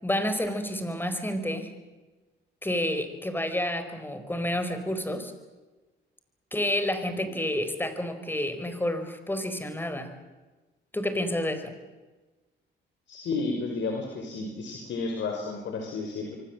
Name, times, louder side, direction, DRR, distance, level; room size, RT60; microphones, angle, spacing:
voice 1, 0.0-1.7 2.6-5.3 6.5-10.1 10.9-11.7, left 1 dB, 10° left, 9 dB, 4.7 m, -29 dB
voice 2, 13.1-16.4, left 3 dB, 70° left, 2 dB, 5.5 m, -32 dB
27.0 x 24.0 x 7.7 m, 1.2 s
cardioid pair, 90°, 20 cm